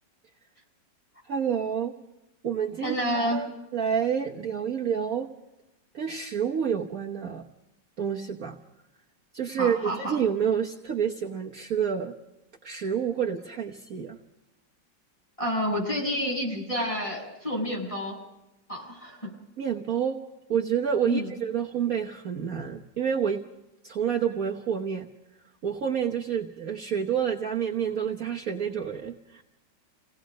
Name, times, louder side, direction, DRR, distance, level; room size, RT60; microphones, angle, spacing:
voice 1, 1.3-1.9 2.4-5.3 5.9-7.4 8.0-8.6 9.3-12.1 12.6-14.2 19.6-20.2 20.5-23.4 23.8-25.1 25.6-29.4, right 8 dB, 55° right, 1 dB, 1.5 m, -28 dB
voice 2, 2.8-3.4 9.6-10.2 15.4-18.2 18.7-19.3 21.0-21.3, equal, 15° left, -1 dB, 7.0 m, -29 dB
28.5 x 18.0 x 5.2 m, 0.97 s
omnidirectional pair, 1.9 m